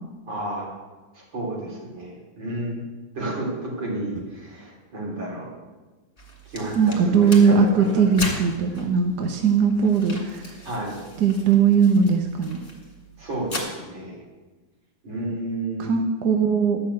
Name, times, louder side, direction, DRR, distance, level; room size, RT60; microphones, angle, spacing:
voice 1, 0.3-0.7 1.1-2.8 3.1-5.5 6.4-8.1 10.6-11.0 13.2-14.2 15.0-15.9, right 2 dB, 80° right, -3 dB, 4.6 m, -31 dB
sound 1, 6.2-13.6, left 1 dB, 30° left, 2.3 m, -38 dB
voice 2, 6.8-10.6 11.2-12.6 15.8-16.8, right 5 dB, 60° right, 3 dB, 1.5 m, -19 dB
12.0 x 6.7 x 8.5 m, 1.2 s
omnidirectional pair, 2.1 m